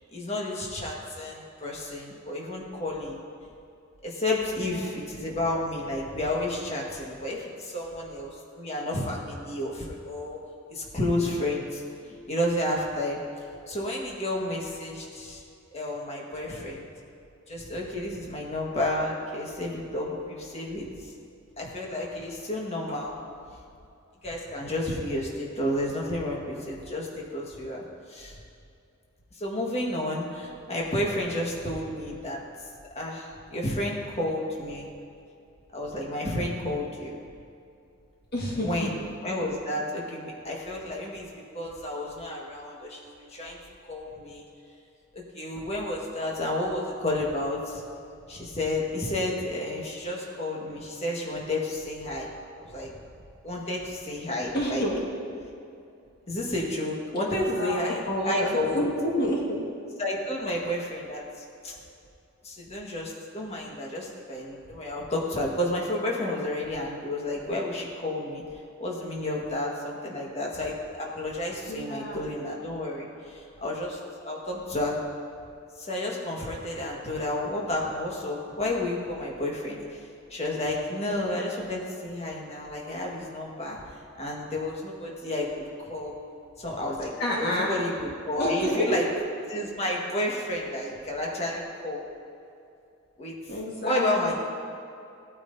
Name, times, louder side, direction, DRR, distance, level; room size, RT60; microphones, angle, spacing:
voice 1, 0.1-3.2 4.0-10.4 10.7-13.2 13.7-15.4 15.7-16.9 17.5-21.1 21.6-23.2 24.2-27.8 28.1-28.3 29.4-32.4 32.9-34.9 35.7-37.1 38.6-43.6 43.9-44.4 45.1-47.8 48.3-52.3 52.6-52.9 53.4-54.8 56.3-58.8 60.0-61.2 61.6-61.7 62.4-68.4 68.8-75.0 75.8-86.1 86.6-87.1 87.4-89.0 89.5-92.0 93.2-93.3 93.8-94.3, left 1 dB, 30° left, -3 dB, 1.6 m, -31 dB
voice 2, 4.6-5.0 38.3-38.9 54.5-55.0 57.3-59.6 71.7-72.2 87.2-87.7 88.4-89.0 93.5-94.3, equal, 50° left, -4 dB, 1.7 m, -29 dB
17.5 x 9.0 x 2.7 m, 2.5 s
head